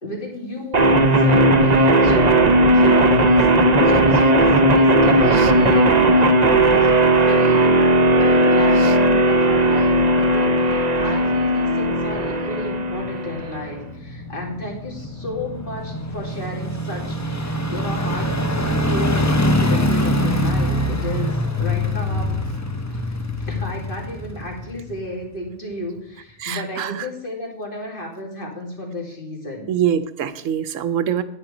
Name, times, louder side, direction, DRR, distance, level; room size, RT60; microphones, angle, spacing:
voice 1, 0.0-2.4 2.7-6.4 6.7-7.8 8.2-18.3 18.9-22.4 22.9-23.1 23.4-29.7, left 1 dB, 45° left, 0 dB, 2.8 m, -33 dB
sound 1, 0.7-13.7, right 1 dB, 40° right, 0.9 m, -16 dB
sound 2, 9.1-25.3 25.7-25.8, left 1 dB, 15° left, 0.8 m, -25 dB
voice 2, 26.4-27.1 29.7-31.2, right 9 dB, 80° right, 13 dB, 1.1 m, -24 dB
9.7 x 9.6 x 5.0 m, 0.76 s
omnidirectional pair, 1.3 m